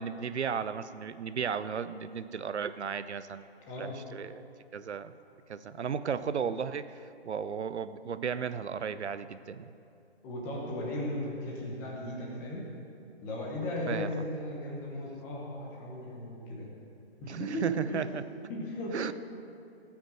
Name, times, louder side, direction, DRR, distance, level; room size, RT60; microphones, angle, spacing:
voice 1, 0.0-3.5 3.8-4.4 4.7-5.1 5.5-9.7 13.9-14.1 17.2-18.2 18.9-19.1, right 6 dB, 85° right, 13 dB, 0.7 m, -35 dB
voice 2, 10.2-12.6 13.2-16.7 17.2-18.0 18.5-19.0, left 1 dB, 10° left, -3 dB, 0.9 m, -36 dB
16.0 x 6.0 x 7.7 m, 2.6 s
hypercardioid pair, 165°, 33 cm